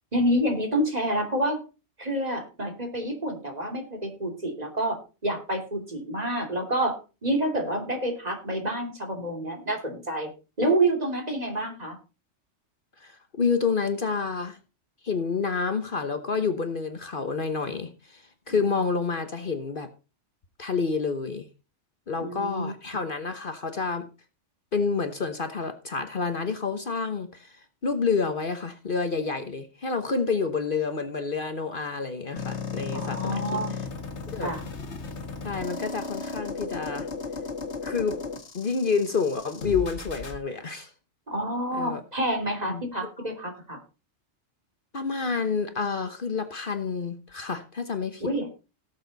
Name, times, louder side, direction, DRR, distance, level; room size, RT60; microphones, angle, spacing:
voice 1, 0.1-1.6 2.0-10.3 10.6-12.0 22.2-22.7 32.9-33.7 34.4-34.6 41.3-43.8 48.2-48.5, right 1 dB, 35° right, 3 dB, 2.8 m, -28 dB
voice 2, 13.0-14.6 15.0-19.9 20.6-21.5 22.1-24.1 24.7-33.6 34.3-34.5 35.4-37.1 37.8-38.2 38.5-40.9 41.7-42.0 42.6-43.1 44.9-48.3, left 5 dB, 50° left, 8 dB, 1.2 m, -29 dB
sound 1, 32.4-40.4, left 4 dB, 65° left, 2.1 m, -35 dB
17.5 x 7.2 x 4.0 m, 0.31 s
omnidirectional pair, 1.2 m